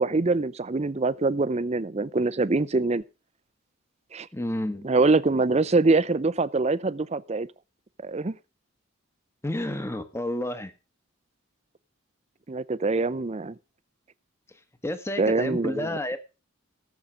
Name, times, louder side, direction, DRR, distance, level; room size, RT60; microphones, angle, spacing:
voice 1, 0.0-3.0 4.1-4.3 4.8-7.5 8.0-8.3 12.5-13.5 15.2-16.0, right 3 dB, 30° right, 17 dB, 0.5 m, -24 dB
voice 2, 4.3-4.9 9.4-10.7 14.8-16.2, left 1 dB, 10° left, 11 dB, 1.2 m, -30 dB
17.5 x 7.3 x 5.1 m, 0.32 s
head